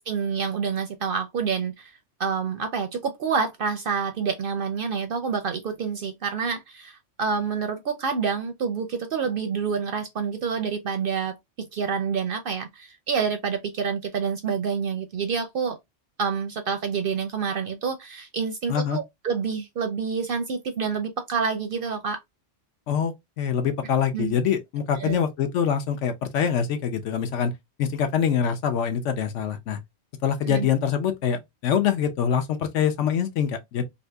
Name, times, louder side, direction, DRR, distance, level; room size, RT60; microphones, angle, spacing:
voice 1, 0.0-1.9 2.2-11.4 11.7-15.8 16.2-22.2 24.1-24.3 25.0-25.2 30.5-30.7, right 6 dB, 60° right, 0.6 m, -28 dB
voice 2, 18.7-19.0 22.9-27.5 27.8-29.8 30.2-33.8, left 8 dB, 75° left, 1.0 m, -24 dB
2.9 x 2.7 x 3.3 m
omnidirectional pair, 1.3 m